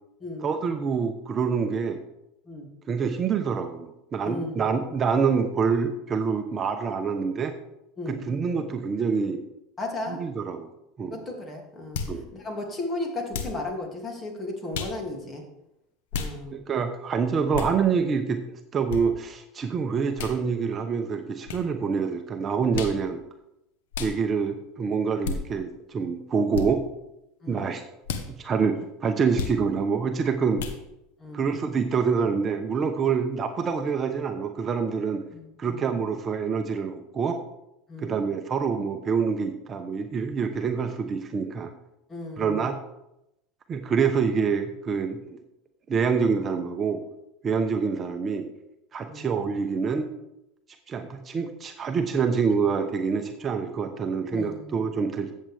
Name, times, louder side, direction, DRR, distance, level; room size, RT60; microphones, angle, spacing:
voice 1, 0.4-2.0 2.9-7.5 8.1-9.4 10.1-10.7 11.0-11.2 12.1-12.3 16.5-23.2 24.0-26.8 27.5-27.8 28.3-30.6 31.3-35.2 35.6-37.4 38.0-41.7 42.4-42.7 43.7-45.4 45.9-47.0 47.4-48.4 48.9-50.1 50.9-55.3, right 5 dB, 30° right, 5 dB, 0.9 m, -26 dB
voice 2, 4.2-4.6 8.0-8.2 9.8-10.2 11.1-12.0 12.3-15.4 16.2-16.6 27.4-27.6 31.2-31.5 35.3-35.9 37.9-38.2 42.1-42.7 49.1-49.3 54.3-54.7, left 2 dB, 25° left, 1 dB, 2.6 m, -35 dB
sound 1, 11.9-12.2 13.3-13.6 14.7-15.0 16.1-16.3 17.5-17.7 18.9-19.0 20.2-20.4 21.5-21.6 22.7-23.0 23.9-24.2 25.2-25.4 26.5-26.7 28.0-28.3 29.3-29.6 30.6-30.8, left 6 dB, 80° left, 1.2 m, -31 dB
14.0 x 7.7 x 3.5 m, 0.86 s
supercardioid pair, 105°, 0 cm